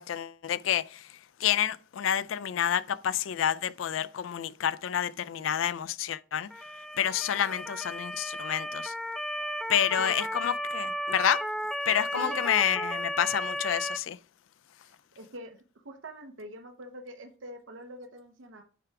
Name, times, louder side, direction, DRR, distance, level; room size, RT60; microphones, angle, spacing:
voice 1, 0.0-6.5 7.0-8.9 9.7-11.5 11.9-14.2, left 9 dB, 90° left, 0.4 m, -29 dB
Motor vehicle (road) / Siren, 6.5-14.0, equal, ahead, 0.3 m, -34 dB
voice 2, 14.8-15.6 15.8-18.6, right 1 dB, 85° right, 0.9 m, -44 dB
9.5 x 3.4 x 5.7 m
head